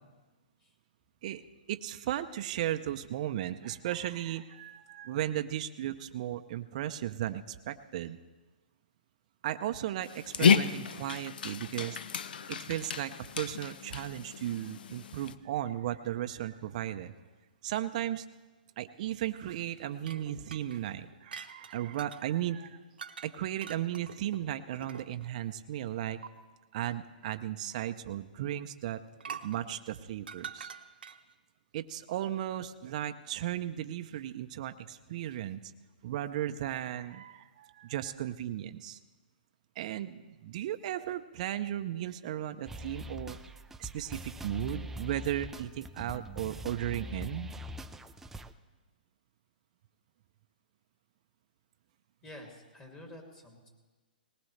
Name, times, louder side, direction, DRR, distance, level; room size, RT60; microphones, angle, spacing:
voice 1, 1.7-8.2 9.4-12.0 12.5-17.1 17.6-18.3 18.8-22.8 23.2-26.2 26.7-29.0 29.4-30.7 31.7-35.6 36.0-39.0 39.8-43.4 43.8-47.5, right 12 dB, 50° right, 8 dB, 0.6 m, -35 dB
Dog, 10.0-15.3, left 6 dB, 70° left, 0.7 m, -31 dB
sound 1, 20.0-22.3 23.0-23.3 23.6-25.3 26.2-26.3 29.2-31.3, right 6 dB, 80° right, 1.0 m, -45 dB
sound 2, 42.7-48.5, left 1 dB, 5° right, 0.5 m, -43 dB
voice 2, 52.2-53.7, left 1 dB, 15° left, 0 dB, 2.4 m, -49 dB
19.5 x 19.0 x 3.3 m, 1.2 s
hypercardioid pair, 140°, 5 cm